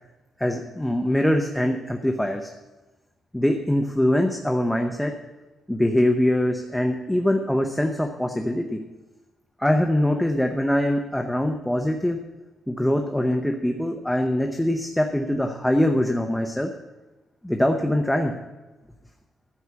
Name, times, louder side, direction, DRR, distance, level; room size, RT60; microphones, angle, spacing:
voice 1, 0.4-2.5 3.3-5.1 5.7-8.8 9.6-12.2 12.7-16.7 17.4-18.3, left 1 dB, 5° left, 4 dB, 0.8 m, -23 dB
14.0 x 4.9 x 8.3 m, 1.1 s
cardioid pair, 110°, 0 cm